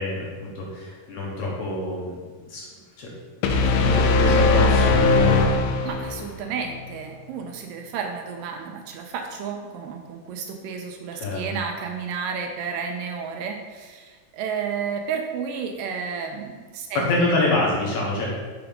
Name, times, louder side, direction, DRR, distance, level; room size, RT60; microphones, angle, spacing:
voice 1, 0.0-2.1 2.5-2.6 3.0-3.1 3.6-5.4 11.1-11.4 16.9-18.3, left 2 dB, 65° left, -4 dB, 2.2 m, -25 dB
sound 1, 3.4-6.4, left 3 dB, 90° left, 2.3 m, -19 dB
voice 2, 5.8-17.1, right 6 dB, 80° right, 3 dB, 2.1 m, -32 dB
5.8 x 3.9 x 5.1 m, 1.4 s
omnidirectional pair, 4.1 m